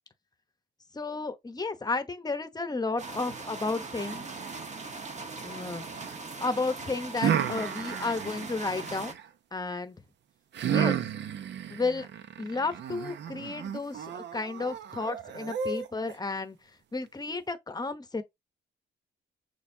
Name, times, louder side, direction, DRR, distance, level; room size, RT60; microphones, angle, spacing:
voice 1, 0.9-4.3 5.4-5.8 6.4-9.1 9.5-10.0 10.7-11.0 11.7-12.1 12.4-16.6 16.9-18.2, left 3 dB, 20° left, 0.9 m, -32 dB
sound 1, 3.0-9.1, right 3 dB, 35° right, 1.2 m, -40 dB
sound 2, 4.0-6.2 7.2-9.3 10.5-16.1, right 8 dB, 65° right, 0.7 m, -33 dB
6.5 x 2.9 x 2.7 m
cardioid pair, 90°, 20 cm